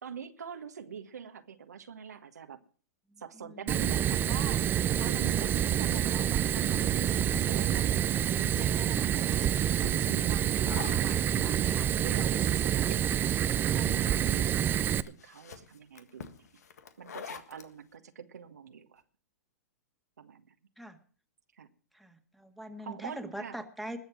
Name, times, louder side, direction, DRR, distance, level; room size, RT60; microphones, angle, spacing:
voice 1, 0.0-2.6 3.2-4.6 5.0-8.1 8.4-9.5 9.8-13.0 13.7-16.3 17.0-19.0 20.2-20.4 21.6-21.7 22.8-23.6, right 7 dB, 80° right, 7 dB, 1.5 m, -43 dB
voice 2, 3.1-3.7 5.6-5.7 20.8-21.0 21.9-24.0, right 1 dB, ahead, 7 dB, 1.8 m, -43 dB
Fire, 3.7-15.0, right 10 dB, 25° right, 0.6 m, -27 dB
sound 1, 5.4-17.7, left 7 dB, 75° left, 1.7 m, -49 dB
20.5 x 7.3 x 6.0 m, 0.42 s
hypercardioid pair, 115°, 9 cm